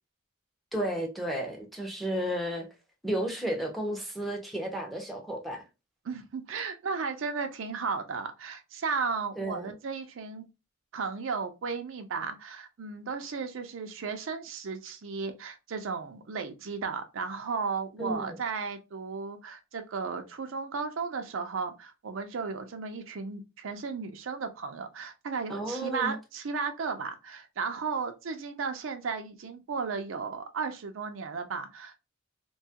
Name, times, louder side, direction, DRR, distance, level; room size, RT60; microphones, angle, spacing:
voice 1, 0.7-2.7 3.0-5.6 9.4-9.7 18.0-18.4 25.5-26.1, right 1 dB, ahead, 0.6 m, -33 dB
voice 2, 6.0-10.5 10.9-32.0, right 5 dB, 70° right, 0.5 m, -34 dB
2.8 x 2.3 x 2.7 m
head